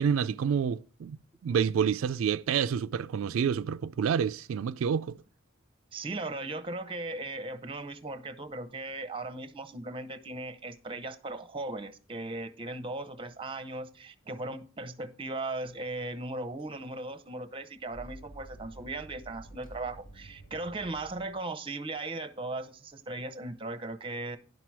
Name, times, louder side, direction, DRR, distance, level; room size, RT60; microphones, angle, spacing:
voice 1, 0.0-5.2, right 7 dB, 85° right, 0.3 m, -28 dB
voice 2, 5.9-24.4, right 2 dB, 25° right, 0.7 m, -38 dB
sound 1, 16.6-16.7 17.8-21.5, right 1 dB, 80° left, 2.8 m, -50 dB
10.5 x 6.0 x 4.6 m
head